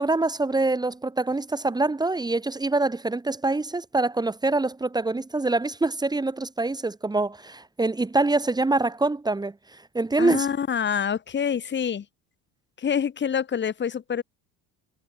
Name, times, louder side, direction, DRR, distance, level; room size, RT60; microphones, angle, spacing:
voice 1, 0.0-9.5 9.9-10.5, right 2 dB, 10° right, 3.0 m, -25 dB
voice 2, 10.2-12.1 12.8-14.2, left 7 dB, 35° left, 3.7 m, -26 dB
cardioid pair, 135°, 33 cm